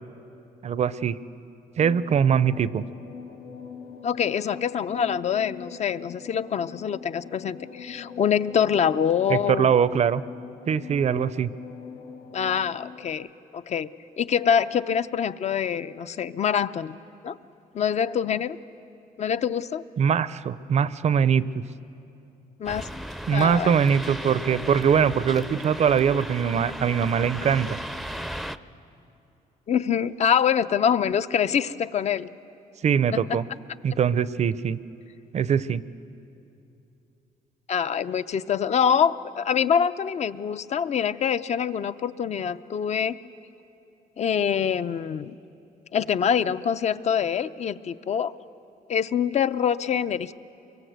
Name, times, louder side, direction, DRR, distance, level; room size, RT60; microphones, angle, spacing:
voice 1, 0.6-1.2 1.8-2.8 9.3-10.2 10.7-11.5 20.0-21.5 23.3-27.8 32.8-33.5 33.8-34.8 35.3-35.8, right 7 dB, 45° right, 17 dB, 0.6 m, -22 dB
sound 1, 1.8-13.1, left 6 dB, 80° left, 1.3 m, -42 dB
voice 2, 4.0-9.7 12.3-13.3 13.5-13.9 14.2-17.0 17.2-17.4 17.7-18.6 19.2-19.8 22.6-22.9 23.3-23.8 29.7-32.3 33.3-33.4 37.7-43.2 44.2-45.3 45.9-48.3 48.9-50.3, left 8 dB, 45° left, 13 dB, 0.6 m, -25 dB
sound 2, 22.6-28.6, equal, ahead, 0.6 m, -35 dB
24.0 x 23.0 x 8.1 m, 2.8 s
cardioid pair, 115°, 15 cm